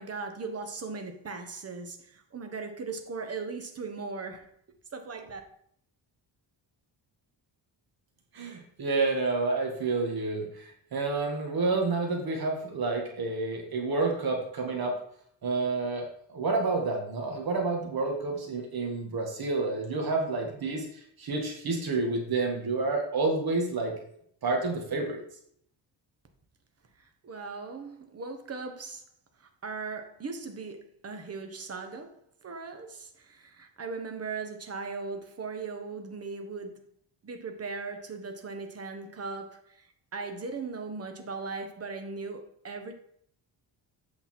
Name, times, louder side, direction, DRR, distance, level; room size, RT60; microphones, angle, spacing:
voice 1, 0.0-4.5 4.9-5.4 27.0-29.0 29.4-36.9 37.2-39.9 40.1-42.9, right 4 dB, 30° right, 1.2 m, -38 dB
voice 2, 8.3-15.0 15.4-23.9 24.4-25.2, right 3 dB, 50° right, 1.9 m, -29 dB
8.5 x 5.5 x 4.4 m
cardioid pair, 135°, 46 cm